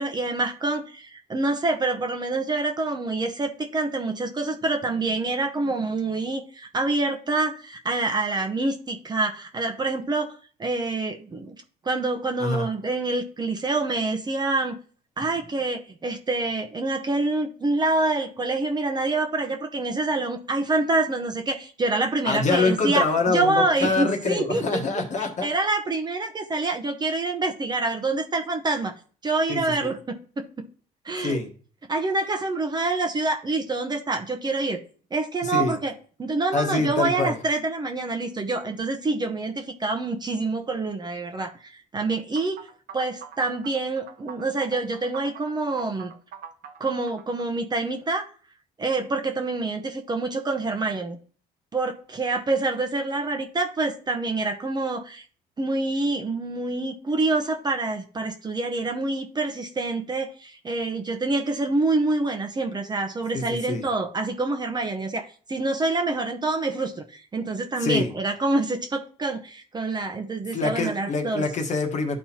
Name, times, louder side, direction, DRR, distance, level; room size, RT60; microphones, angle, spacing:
voice 1, 0.0-11.5 11.8-14.8 15.2-24.8 25.2-28.9 29.2-30.4 31.0-31.4 31.9-34.8 35.1-35.9 36.2-42.6 42.9-46.1 46.8-48.3 48.8-51.2 51.7-55.2 55.6-71.4, right 2 dB, 25° right, 5 dB, 0.8 m, -26 dB
voice 2, 22.3-25.5 29.5-29.9 31.2-31.5 35.4-35.7 36.5-37.4 63.3-63.8 67.8-68.1 70.5-72.2, left 3 dB, 45° left, 5 dB, 1.3 m, -25 dB
sound 1, 42.3-47.5, right 8 dB, 65° right, 0.8 m, -44 dB
12.0 x 4.3 x 2.9 m, 0.42 s
cardioid pair, 110°, 17 cm